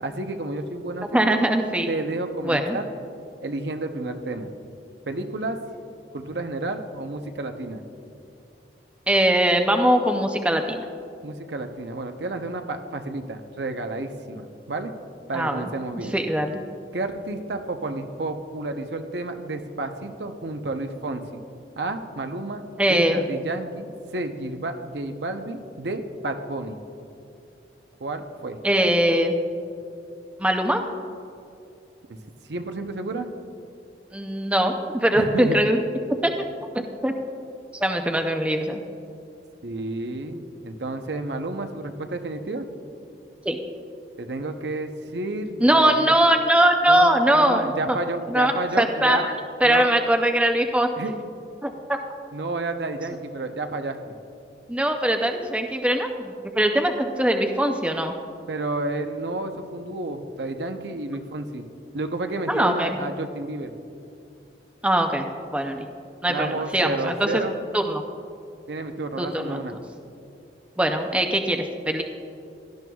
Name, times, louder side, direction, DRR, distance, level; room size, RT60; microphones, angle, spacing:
voice 1, 0.0-1.4 1.9-2.9 3.4-4.5 5.1-5.6 6.1-7.8 11.2-14.9 15.3-16.1 16.9-21.2 21.8-22.6 22.9-26.8 28.0-28.6 32.1-32.2 32.5-33.3 35.1-35.6 39.6-42.7 44.2-46.1 46.9-49.2 49.6-49.9 51.0-51.1 52.3-54.0 58.5-61.6 61.9-63.7 66.3-67.6 68.7-69.7, right 2 dB, 75° right, 6 dB, 0.7 m, -31 dB
voice 2, 1.1-1.9 2.4-2.8 9.1-10.9 15.3-16.6 22.8-23.2 28.6-29.3 30.4-30.8 34.1-35.8 36.2-36.3 36.7-37.1 37.7-38.8 43.5-43.6 45.6-48.0 48.3-49.3 49.6-50.9 51.6-52.0 54.7-58.1 62.5-63.0 64.8-65.3 65.5-65.8 66.2-67.4 67.7-68.0 69.2-69.6 70.8-72.0, right 1 dB, 5° right, 4 dB, 0.5 m, -21 dB
17.0 x 12.5 x 2.3 m, 2.6 s
head